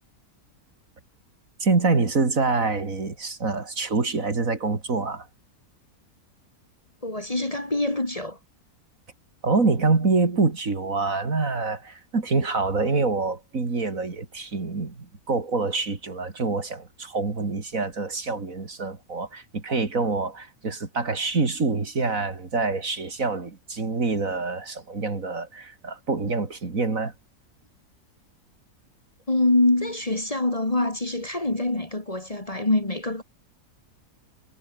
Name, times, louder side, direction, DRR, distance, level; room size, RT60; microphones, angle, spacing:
voice 1, 1.6-5.3 9.4-27.1, right 3 dB, 60° right, 3.2 m, -26 dB
voice 2, 7.0-8.4 29.3-33.2, left 2 dB, 25° left, 2.2 m, -24 dB
omnidirectional pair, 1.6 m